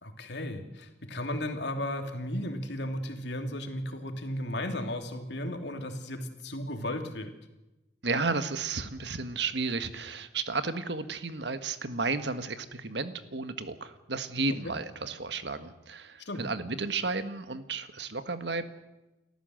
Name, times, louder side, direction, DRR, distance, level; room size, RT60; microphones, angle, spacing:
voice 1, 0.0-7.3 16.2-16.4, left 1 dB, 75° left, 5 dB, 2.9 m, -35 dB
voice 2, 8.0-18.6, right 3 dB, 75° right, 10 dB, 1.5 m, -33 dB
30.0 x 14.0 x 7.8 m, 1.0 s
head